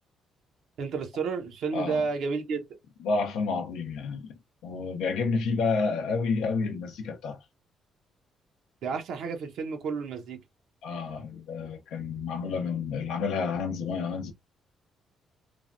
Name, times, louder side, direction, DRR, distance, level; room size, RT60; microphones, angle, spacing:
voice 1, 0.8-2.6 8.8-10.4, right 5 dB, 75° right, 0.7 m, -31 dB
voice 2, 1.7-2.0 3.0-4.2 4.6-7.4 10.8-14.3, left 4 dB, 90° left, 0.5 m, -30 dB
3.3 x 2.1 x 2.4 m
cardioid pair, 90°, 0 cm